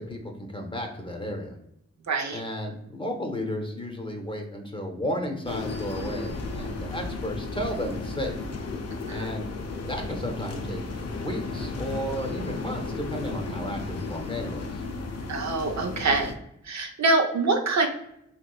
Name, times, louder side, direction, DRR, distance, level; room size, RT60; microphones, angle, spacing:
voice 1, 0.0-1.6 2.3-8.5 9.1-9.5 9.9-10.8 11.1-14.8, equal, 15° left, 2 dB, 0.7 m, -33 dB
voice 2, 2.1-2.4 9.1-9.3 15.3-16.3 16.6-17.9, right 3 dB, 70° right, 2 dB, 0.6 m, -25 dB
sound 1, 5.4-16.3, left 3 dB, 60° left, 0.5 m, -34 dB
3.0 x 3.0 x 2.3 m, 0.77 s
cardioid pair, 60°, 29 cm